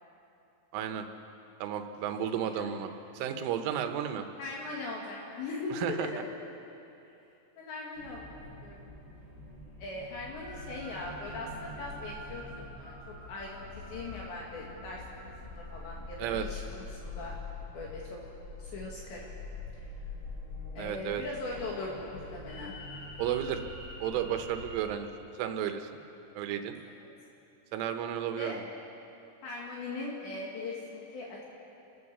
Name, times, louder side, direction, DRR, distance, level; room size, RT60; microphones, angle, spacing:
voice 1, 0.7-1.1 1.6-2.9 3.2-4.3 5.7-6.1 16.2-16.5 20.8-21.2 23.2-23.6 24.0-25.1 25.4-25.9 26.4-26.8 27.7-28.6, right 9 dB, 80° right, 7 dB, 3.5 m, -32 dB
voice 2, 2.2-2.7 4.4-6.2 7.6-8.3 8.6-8.8 9.8-17.4 17.7-18.2 18.6-19.3 19.8-19.9 20.8-22.8 28.4-28.6 29.4-31.5, left 2 dB, 65° left, -3 dB, 4.1 m, -40 dB
sound 1, 7.9-24.8, left 2 dB, 25° left, 7.4 m, -44 dB
27.5 x 15.5 x 6.8 m, 2.8 s
omnidirectional pair, 5.7 m